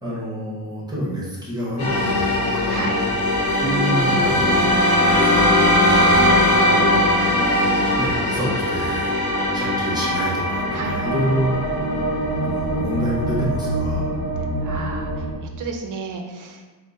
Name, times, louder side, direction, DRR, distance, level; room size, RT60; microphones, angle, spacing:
voice 1, 0.0-2.9 3.6-4.7 5.1-7.1 8.0-9.2 9.5-11.6 12.4-14.1, equal, 10° right, -7 dB, 0.8 m, -28 dB
sound 1, 1.8-15.3, left 1 dB, 65° left, 1.0 m, -21 dB
Wind instrument woodwind instrument, 3.7-7.9, left 2 dB, 20° left, 0.8 m, -24 dB
voice 2, 14.6-15.2 15.6-16.6, right 4 dB, 50° right, 3 dB, 0.5 m, -32 dB
3.6 x 2.1 x 3.8 m, 1.2 s
wide cardioid pair, 160°, 40 cm